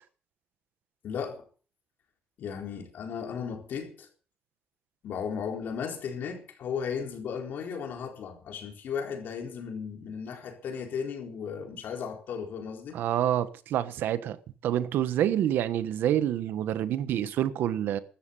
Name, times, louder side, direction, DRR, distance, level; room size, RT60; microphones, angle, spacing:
voice 1, 1.0-1.4 2.4-4.1 5.0-13.0, left 6 dB, 75° left, 4.2 m, -35 dB
voice 2, 12.9-14.4 14.6-18.0, right 11 dB, 85° right, 1.2 m, -27 dB
15.0 x 13.5 x 5.5 m
cardioid pair, 115°, 3 cm